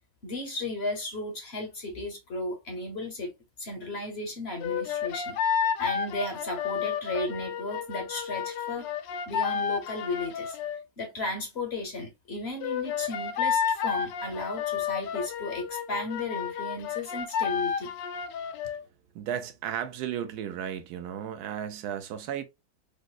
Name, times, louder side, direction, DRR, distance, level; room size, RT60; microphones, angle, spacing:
voice 1, 0.2-3.3 3.6-5.4 5.8-8.9 9.3-10.6 11.0-17.9, left 2 dB, 50° left, 0.8 m, -35 dB
sound 1, 4.6-10.8 12.6-18.8, left 7 dB, 75° left, 1.2 m, -31 dB
voice 2, 19.1-22.4, right 9 dB, 75° right, 0.9 m, -34 dB
5.0 x 2.0 x 2.2 m
omnidirectional pair, 2.1 m